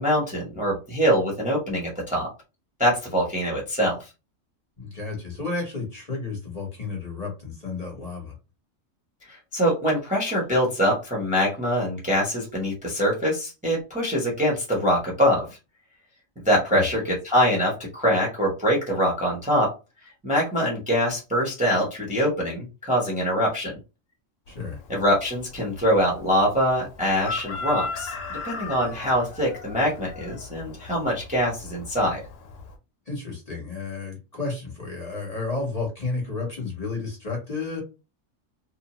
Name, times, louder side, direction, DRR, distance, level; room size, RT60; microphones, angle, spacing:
voice 1, 0.0-2.3 2.8-4.1 9.3-15.6 16.4-19.7 20.2-23.8 24.9-32.2, equal, 5° right, -3 dB, 0.8 m, -24 dB
voice 2, 4.8-8.3 16.7-16.9 24.5-24.8 33.1-37.8, left 3 dB, 35° left, -1 dB, 1.0 m, -32 dB
Chicken rooster, 24.5-32.8, left 3 dB, 80° left, 1.0 m, -38 dB
2.7 x 2.0 x 2.9 m, 0.28 s
omnidirectional pair, 1.3 m